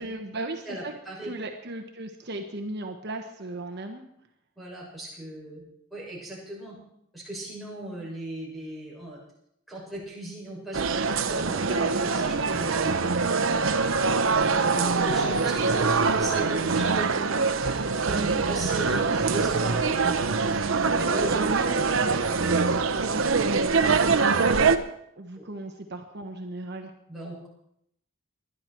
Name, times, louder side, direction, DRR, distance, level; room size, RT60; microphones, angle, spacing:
voice 1, 0.0-0.9 1.2-4.1 18.1-18.5 19.1-19.4 21.0-22.6 22.9-24.0 25.2-26.9, right 2 dB, 55° right, 4 dB, 1.2 m, -36 dB
voice 2, 0.7-1.3 4.6-5.6 5.9-6.8 7.1-9.2 9.7-13.5 14.1-20.3 20.9-21.4 25.4-25.5 27.1-27.5, right 1 dB, ahead, -7 dB, 6.9 m, -38 dB
sound 1, 10.7-24.8, right 4 dB, 80° right, 0.9 m, -24 dB
20.5 x 12.0 x 4.6 m, 0.74 s
head